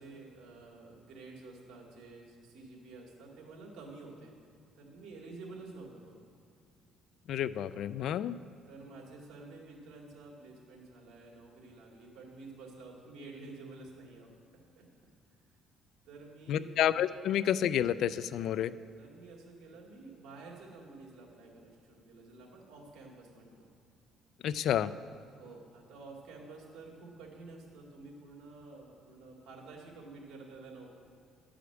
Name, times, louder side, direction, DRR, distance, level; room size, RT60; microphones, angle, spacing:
voice 1, 0.0-4.3 4.7-6.2 8.7-14.4 14.8-14.9 16.0-16.8 18.3-18.5 19.0-23.7 25.3-30.9, right 3 dB, 75° right, -2 dB, 2.4 m, -50 dB
voice 2, 7.3-8.4 16.5-18.7 24.4-24.9, left 10 dB, 65° left, 15 dB, 0.3 m, -30 dB
11.0 x 5.0 x 8.1 m, 2.3 s
cardioid pair, 125°, 0 cm